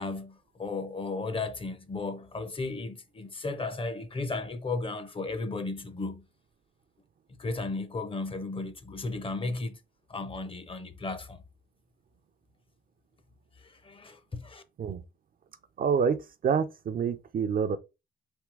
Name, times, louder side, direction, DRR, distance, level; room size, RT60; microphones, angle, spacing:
voice 1, 0.0-6.2 7.4-9.8 10.1-11.4 13.6-14.6, left 3 dB, 25° left, 0.7 m, -35 dB
voice 2, 15.8-17.8, right 6 dB, 45° right, 0.6 m, -27 dB
3.6 x 2.8 x 4.6 m
cardioid pair, 90°, 20 cm